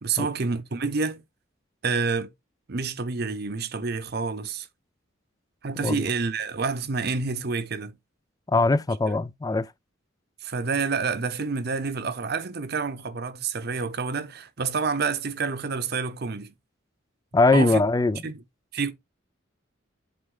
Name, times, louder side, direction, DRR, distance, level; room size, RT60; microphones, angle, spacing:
voice 1, 0.0-1.2 1.8-2.3 2.7-4.7 5.6-8.0 9.1-9.2 10.4-16.5 17.5-17.8 18.2-18.4 18.7-18.9, right 4 dB, 50° right, 0.7 m, -28 dB
voice 2, 8.5-9.7 17.3-18.2, left 3 dB, 20° left, 0.3 m, -21 dB
8.0 x 3.3 x 3.8 m
head